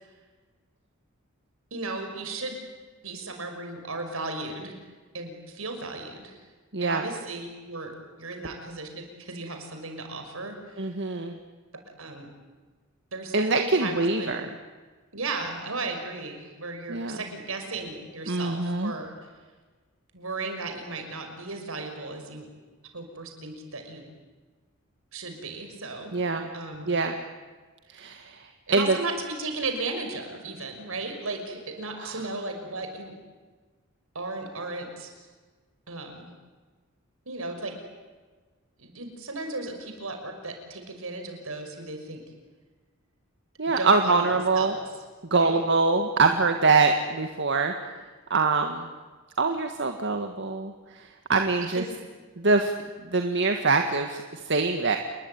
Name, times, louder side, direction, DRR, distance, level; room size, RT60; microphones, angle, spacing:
voice 1, 1.7-2.6 3.0-4.8 5.1-6.4 6.8-10.9 12.0-12.3 13.1-14.4 15.1-19.1 20.1-22.5 22.9-24.1 25.1-26.1 26.5-26.9 28.7-33.1 34.1-35.1 35.9-36.3 37.3-37.8 38.8-42.2 43.8-44.9 45.2-45.6 51.6-51.9, right 3 dB, 75° right, 5 dB, 6.0 m, -35 dB
voice 2, 6.7-7.0 10.8-11.4 13.3-14.5 16.9-17.2 18.3-18.9 26.1-26.5 26.9-27.2 27.9-29.0 32.0-32.2 43.6-44.7 45.3-47.7 48.3-48.9 49.4-51.8 52.4-52.7 53.0-55.0, right 3 dB, 60° right, 5 dB, 1.8 m, -24 dB
29.0 x 21.5 x 9.5 m, 1.4 s
head